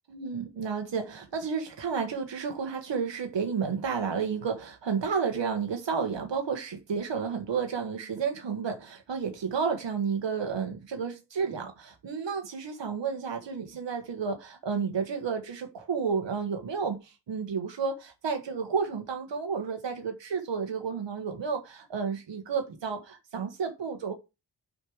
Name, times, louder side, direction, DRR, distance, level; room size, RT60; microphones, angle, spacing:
voice 1, 0.1-24.1, right 6 dB, 75° right, 1.5 m, -31 dB
6.6 x 5.4 x 4.9 m
wide cardioid pair, 135°, 44 cm